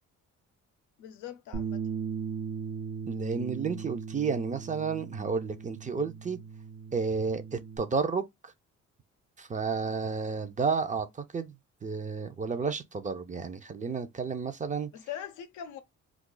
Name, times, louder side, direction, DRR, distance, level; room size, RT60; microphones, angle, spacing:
voice 1, 1.0-1.8 14.9-15.8, left 10 dB, 90° left, 0.6 m, -41 dB
Bass guitar, 1.5-7.8, right 6 dB, 85° right, 0.9 m, -38 dB
voice 2, 3.1-6.4 6.9-8.5 9.4-14.9, right 5 dB, 25° right, 0.5 m, -32 dB
2.4 x 2.3 x 3.7 m
cardioid pair, 90°, 30 cm